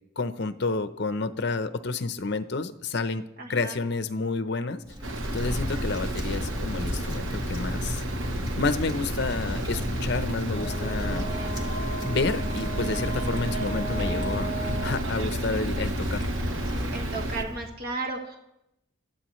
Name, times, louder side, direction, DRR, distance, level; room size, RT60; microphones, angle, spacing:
voice 1, 0.2-4.8 5.3-8.0 8.6-11.3 12.0-16.3, left 3 dB, 55° left, 11 dB, 0.7 m, -30 dB
voice 2, 3.4-3.7 16.9-18.4, right 3 dB, 50° right, 1 dB, 1.6 m, -34 dB
Wind, 4.8-17.7, left 1 dB, 20° right, 1.8 m, -32 dB
sound 1, 5.0-17.4, right 3 dB, 80° right, 1.0 m, -34 dB
Brass instrument, 10.5-15.0, right 2 dB, 40° left, 2.5 m, -36 dB
22.0 x 13.5 x 3.1 m, 0.85 s
head